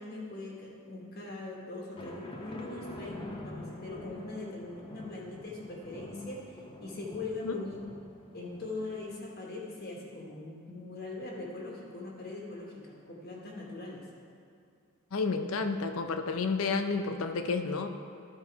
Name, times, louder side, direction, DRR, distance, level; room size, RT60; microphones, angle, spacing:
voice 1, 0.0-6.4 6.8-7.8 8.3-14.0, left 3 dB, 45° left, -3 dB, 1.2 m, -41 dB
sound 1, 2.0-9.1, left 1 dB, 20° left, 0.7 m, -46 dB
voice 2, 15.1-17.9, left 4 dB, 70° left, 7 dB, 0.5 m, -31 dB
12.0 x 4.2 x 4.6 m, 2.5 s
head